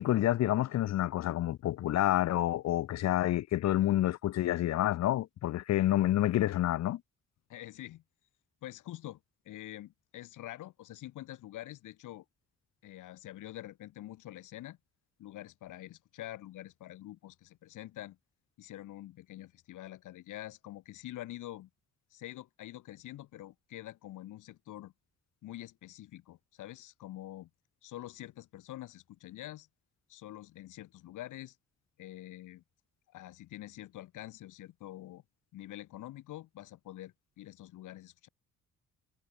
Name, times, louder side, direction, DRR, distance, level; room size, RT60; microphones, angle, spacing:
voice 1, 0.0-7.0, left 13 dB, 60° left, 0.6 m, -28 dB
voice 2, 7.5-8.0 8.6-9.2 9.5-12.3 12.8-14.8 15.2-18.2 18.6-21.7 22.1-24.9 25.4-27.5 27.8-29.7 30.1-31.6 32.0-32.6 33.1-35.2 35.5-38.3, left 14 dB, 85° left, 3.6 m, -46 dB
cardioid pair, 90°, 30 cm